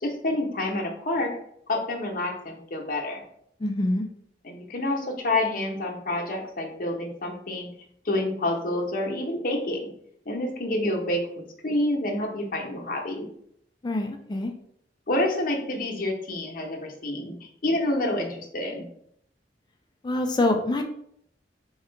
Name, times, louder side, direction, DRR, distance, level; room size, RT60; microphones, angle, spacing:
voice 1, 0.0-1.4 1.7-3.2 4.4-7.7 8.0-9.8 10.3-13.3 15.1-18.9, left 1 dB, 50° left, 1 dB, 0.8 m, -28 dB
voice 2, 3.6-4.1 13.8-14.5 20.0-20.8, left 2 dB, 25° left, 4 dB, 0.4 m, -25 dB
3.6 x 2.4 x 4.4 m, 0.69 s
head